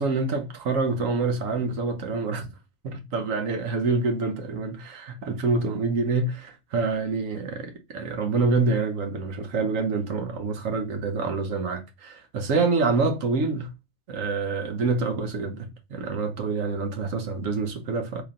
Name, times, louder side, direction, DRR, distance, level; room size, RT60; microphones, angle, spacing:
voice 1, 0.0-2.5 2.8-13.7 14.1-18.2, right 3 dB, 65° right, 1.2 m, -26 dB
3.2 x 2.9 x 3.7 m
omnidirectional pair, 1.5 m